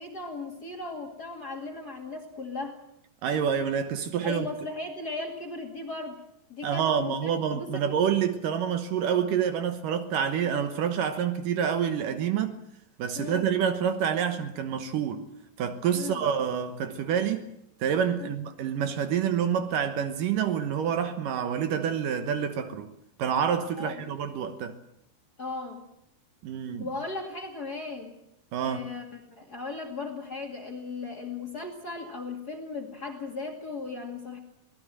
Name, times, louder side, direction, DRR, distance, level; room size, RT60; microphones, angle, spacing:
voice 1, 0.0-2.8 4.2-6.2 6.5-7.9 13.1-13.5 15.9-16.3 18.2-18.3 23.8-24.1 25.4-25.8 26.8-28.1 28.6-34.4, left 3 dB, 30° left, 2.1 m, -37 dB
voice 2, 3.2-4.5 6.6-12.6 13.0-15.3 15.6-17.5 17.8-22.9 23.2-24.8 26.4-26.9 28.5-28.9, right 8 dB, 70° right, 2.4 m, -27 dB
25.0 x 18.5 x 7.6 m
omnidirectional pair, 4.6 m